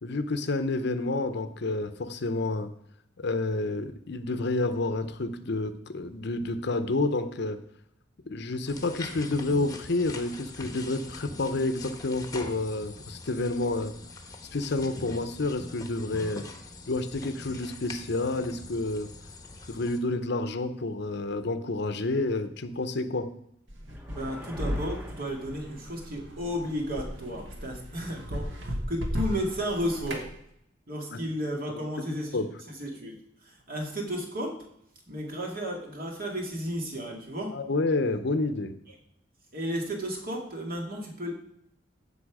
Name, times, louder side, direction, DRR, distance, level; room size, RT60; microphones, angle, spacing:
voice 1, 0.0-2.7 3.2-7.6 8.3-14.0 14.5-16.5 16.9-19.1 19.7-23.3 31.1-31.2 31.7-32.5 37.5-38.8, left 2 dB, 60° left, 11 dB, 0.7 m, -29 dB
sound 1, 8.7-20.0, left 2 dB, 20° left, 1.0 m, -43 dB
sound 2, 23.7-30.3, equal, 70° right, 1.7 m, -35 dB
sound 3, 23.9-26.2, equal, 10° right, 1.0 m, -47 dB
voice 2, 24.1-30.3 30.9-32.4 32.8-33.1 33.4-34.6 35.1-37.6 39.5-41.3, equal, 50° right, 0 dB, 2.2 m, -33 dB
15.5 x 5.6 x 4.8 m, 0.74 s
head